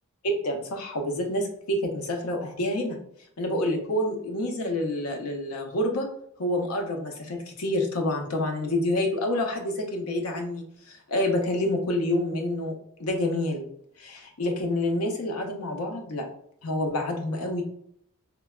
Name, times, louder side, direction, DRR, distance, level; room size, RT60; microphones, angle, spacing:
voice 1, 0.2-3.0 3.4-6.1 6.4-12.7 13.0-13.7 14.0-16.3 16.6-17.6, left 1 dB, 85° left, 3 dB, 0.6 m, -28 dB
3.2 x 2.2 x 2.3 m, 0.67 s
head